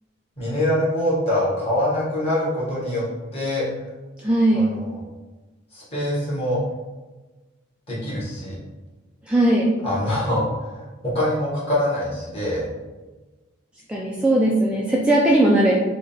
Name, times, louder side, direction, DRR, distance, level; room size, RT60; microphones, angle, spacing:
voice 1, 0.4-3.0 3.3-3.7 4.5-5.0 5.7-6.6 7.9-8.6 9.8-12.7, left 1 dB, 30° left, -7 dB, 1.4 m, -24 dB
voice 2, 4.2-4.7 9.3-9.7 13.9-15.7, right 1 dB, 5° right, -5 dB, 0.3 m, -18 dB
3.8 x 2.3 x 3.9 m, 1.2 s
head